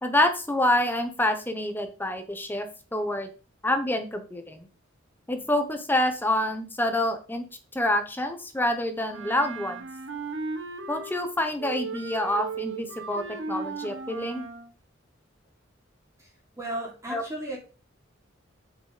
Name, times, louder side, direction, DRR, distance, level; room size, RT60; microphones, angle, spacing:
voice 1, 0.0-2.7 2.9-3.3 3.6-4.7 5.3-7.4 7.7-9.9 10.9-14.5 17.1-17.2, left 1 dB, 10° left, 7 dB, 1.1 m, -27 dB
Wind instrument woodwind instrument, 9.1-11.3 11.6-14.7, right 3 dB, 65° right, 1.3 m, -36 dB
voice 2, 16.2-17.6, right 1 dB, 15° right, -3 dB, 3.9 m, -35 dB
8.2 x 6.7 x 5.1 m, 0.35 s
head